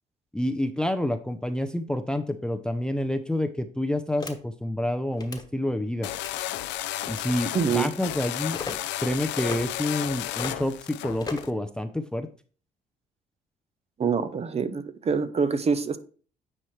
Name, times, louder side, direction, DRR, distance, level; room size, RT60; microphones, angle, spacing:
voice 1, 0.3-6.1 7.1-8.6 9.0-12.3, left 1 dB, 5° left, 0.5 m, -28 dB
sound 1, 4.2-4.3 5.1-5.4 6.1-6.4 7.1-7.4 8.5-8.8 9.4-9.6 10.3-10.6 11.2-11.6, left 4 dB, 20° left, 1.3 m, -36 dB
sound 2, 6.0-11.5, left 15 dB, 85° left, 0.5 m, -33 dB
voice 2, 7.5-7.9 14.0-16.0, right 5 dB, 35° right, 0.8 m, -25 dB
9.6 x 4.4 x 3.2 m
cardioid pair, 85°, 18 cm